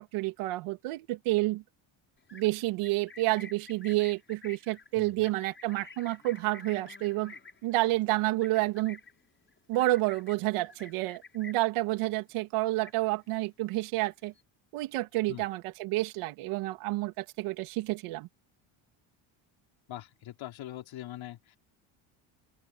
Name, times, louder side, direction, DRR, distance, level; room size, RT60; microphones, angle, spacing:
voice 1, 0.0-1.6 2.3-7.3 7.6-9.0 9.7-14.3 14.7-18.3, right 18 dB, 85° right, 3.0 m, -29 dB
Livestock farm animals working animals, 2.2-11.8 12.1-12.4 12.7-13.4 13.7-14.4, left 4 dB, 25° left, 5.8 m, -51 dB
voice 2, 5.0-5.3 15.3-15.5 19.9-21.6, left 13 dB, 65° left, 4.1 m, -42 dB
open air
cardioid pair, 100°, 50 cm